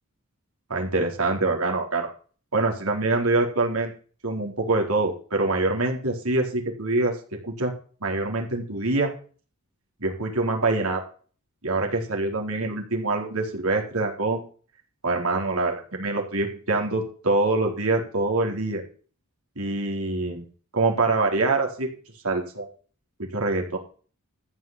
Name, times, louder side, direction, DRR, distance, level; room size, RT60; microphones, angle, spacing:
voice 1, 0.7-2.1 2.5-3.9 4.2-7.7 8.0-9.1 10.0-11.0 11.6-14.4 15.0-18.8 19.6-20.4 20.7-21.9 22.2-22.7 23.2-23.8, right 2 dB, 80° right, 1 dB, 4.2 m, -25 dB
14.5 x 5.9 x 9.1 m, 0.42 s
head